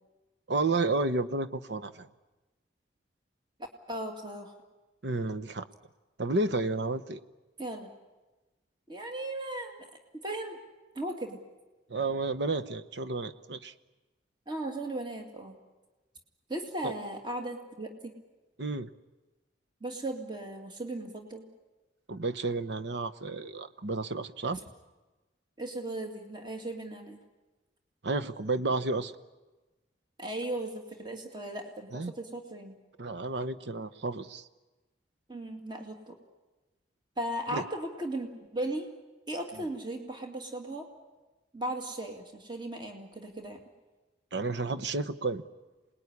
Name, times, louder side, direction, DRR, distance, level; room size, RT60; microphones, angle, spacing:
voice 1, 0.5-2.1 5.0-5.7 6.2-7.2 11.9-13.7 16.8-16.9 18.6-18.9 22.1-24.6 28.0-29.1 31.9-32.1 33.0-34.5 37.5-37.6 44.3-45.4, right 3 dB, 75° right, 12 dB, 1.0 m, -31 dB
voice 2, 3.9-4.5 7.6-7.9 8.9-9.9 10.2-10.6 11.0-11.4 14.5-15.6 16.5-18.1 19.8-21.5 24.5-24.6 25.6-27.2 30.2-32.8 35.3-36.2 37.2-38.9 39.3-40.9 41.5-43.6, right 1 dB, 25° right, 3 dB, 2.4 m, -37 dB
27.5 x 20.0 x 9.8 m, 1.2 s
head